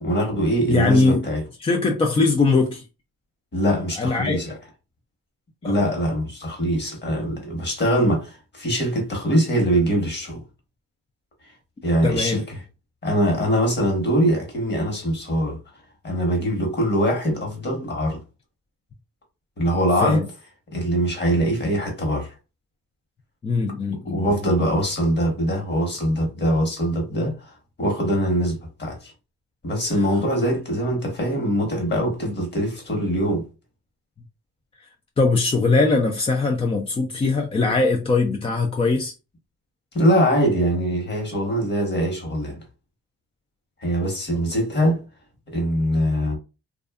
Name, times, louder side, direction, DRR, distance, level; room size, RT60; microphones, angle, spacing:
voice 1, 0.0-1.4 3.5-4.5 5.6-10.4 11.8-12.5 13.0-15.6 16.0-18.2 19.6-20.2 20.7-22.3 24.0-27.4 27.8-29.1 29.6-33.4 39.9-42.6 43.8-45.0 45.5-46.4, equal, 35° left, 1.1 m, -22 dB
voice 2, 0.7-1.3 1.6-2.9 4.0-4.4 5.6-5.8 12.0-12.4 20.0-20.3 23.4-24.2 29.9-30.1 35.2-39.1, left 3 dB, 20° left, 0.3 m, -21 dB
2.5 x 2.3 x 2.3 m
cardioid pair, 90°, 30 cm